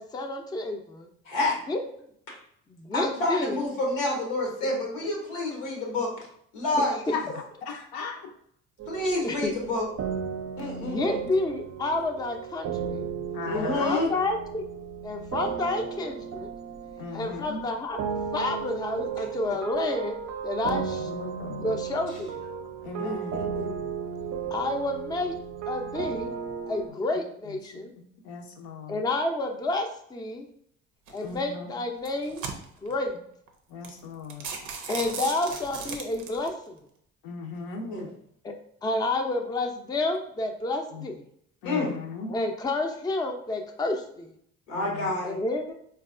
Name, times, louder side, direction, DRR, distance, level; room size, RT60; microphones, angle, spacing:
voice 1, 0.0-1.1 1.7-1.8 2.7-3.6 6.8-6.9 9.2-9.5 10.8-13.1 13.5-14.6 15.0-16.5 17.1-18.0 18.3-20.2 20.4-21.1 21.6-22.4 24.5-25.3 25.7-26.3 26.7-27.9 28.9-30.5 31.1-32.4 32.8-33.2 34.9-36.8 38.4-38.5 38.8-41.1 42.3-44.3 45.2-45.7, left 2 dB, 10° left, 3 dB, 0.5 m, -30 dB
voice 2, 1.3-1.6 2.3-2.4 2.9-6.1 6.5-7.2 8.9-9.8 10.6-11.2 13.5-14.1 23.0-23.7 37.8-38.1 41.6-41.9 44.7-45.4, left 2 dB, 85° left, -1 dB, 1.0 m, -28 dB
voice 3, 7.1-8.3 13.3-13.9 17.0-17.6 20.7-21.8 22.8-23.4 27.7-27.8 28.2-29.0 31.2-31.8 33.7-34.5 37.2-37.9 40.9-41.1 41.6-42.3 44.7-45.2, left 4 dB, 70° left, 3 dB, 0.7 m, -37 dB
sound 1, 8.8-17.6 17.9-26.9, right 7 dB, 45° right, 0.5 m, -35 dB
sound 2, 31.1-31.4 31.9-32.9 33.5-33.6 33.8-34.0 34.3-36.5, right 5 dB, 90° right, 0.5 m, -36 dB
3.9 x 2.3 x 2.4 m, 0.68 s
hypercardioid pair, 55°, 37 cm